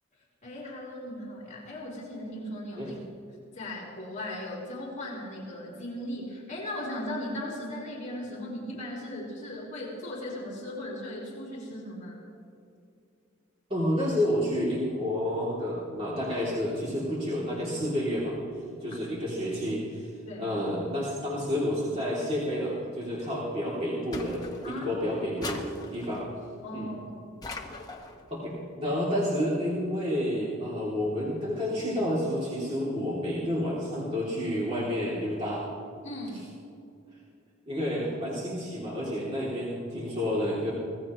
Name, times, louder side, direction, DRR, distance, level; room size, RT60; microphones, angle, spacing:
voice 1, 0.4-3.0 3.5-12.2 20.2-20.5 24.6-24.9 26.6-27.0 36.0-36.5, left 1 dB, 35° left, -5 dB, 4.6 m, -37 dB
voice 2, 13.7-18.4 18.8-20.1 20.4-26.3 26.7-26.9 28.3-35.6 37.7-40.7, equal, 25° right, -8 dB, 3.1 m, -30 dB
sound 1, 24.1-24.9 25.4-26.3 27.4-28.2, left 2 dB, 20° left, 1.3 m, -40 dB
25.5 x 17.5 x 3.2 m, 2.5 s
head